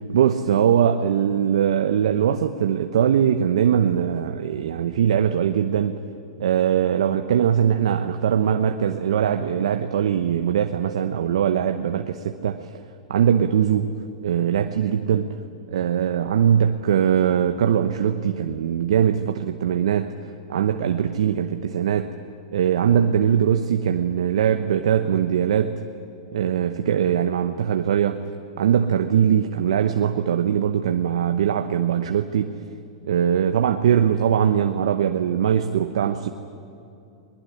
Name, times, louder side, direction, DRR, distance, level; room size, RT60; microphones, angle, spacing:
voice 1, 0.1-6.0 6.4-12.6 13.1-13.9 14.2-15.4 15.7-20.1 20.5-22.1 22.5-25.8 26.3-28.2 28.6-32.5 33.1-36.3, right 9 dB, 75° right, 7 dB, 1.0 m, -21 dB
21.5 x 21.0 x 9.9 m, 2.7 s
hypercardioid pair, 110°, 3 cm